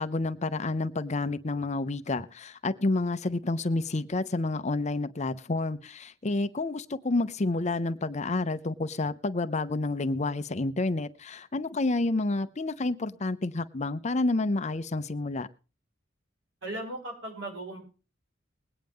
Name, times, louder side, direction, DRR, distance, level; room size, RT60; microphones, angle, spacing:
voice 1, 0.0-15.5, left 2 dB, 35° left, 12 dB, 0.7 m, -29 dB
voice 2, 16.6-17.8, right 1 dB, 70° right, 0 dB, 6.4 m, -37 dB
21.0 x 9.1 x 3.6 m, 0.35 s
head